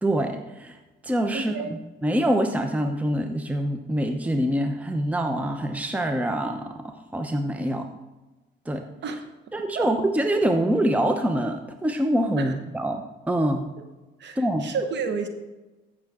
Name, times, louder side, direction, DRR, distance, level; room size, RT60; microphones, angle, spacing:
voice 1, 0.0-0.8 1.0-7.9 8.7-8.9 9.5-13.7 14.4-14.7, right 1 dB, 5° right, 5 dB, 0.8 m, -25 dB
voice 2, 1.3-1.8 9.0-9.1 9.7-9.9 12.4-12.5 14.2-15.3, right 5 dB, 65° right, 7 dB, 1.2 m, -30 dB
15.0 x 6.5 x 3.6 m, 1.1 s
cardioid pair, 90°, 20 cm